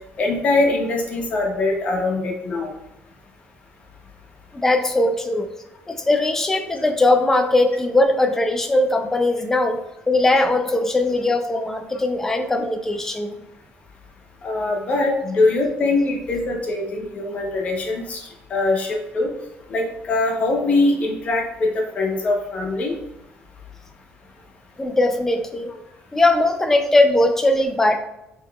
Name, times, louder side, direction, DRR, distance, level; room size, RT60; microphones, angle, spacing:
voice 1, 0.2-2.7 14.4-18.2 18.5-19.3 19.7-22.9, left 2 dB, 35° left, 0 dB, 0.8 m, -22 dB
voice 2, 4.5-5.5 5.9-13.4 24.8-25.7 26.1-28.0, left 2 dB, 10° left, 5 dB, 0.3 m, -19 dB
5.6 x 2.9 x 2.3 m, 0.90 s
cardioid pair, 175°, 4 cm